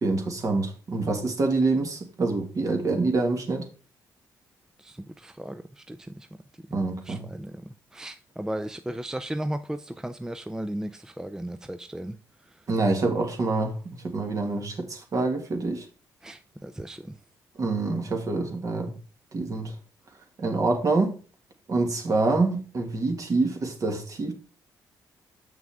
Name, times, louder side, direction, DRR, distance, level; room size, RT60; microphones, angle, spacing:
voice 1, 0.0-3.7 6.7-7.2 12.7-13.8 14.0-15.8 17.6-18.9 19.3-19.7 20.4-21.1 21.7-24.3, right 3 dB, 45° right, 1.9 m, -26 dB
voice 2, 4.8-6.3 7.1-7.6 7.9-12.2 16.2-17.2, right 1 dB, 5° right, 0.5 m, -35 dB
7.3 x 6.0 x 3.5 m
cardioid pair, 80°, 8 cm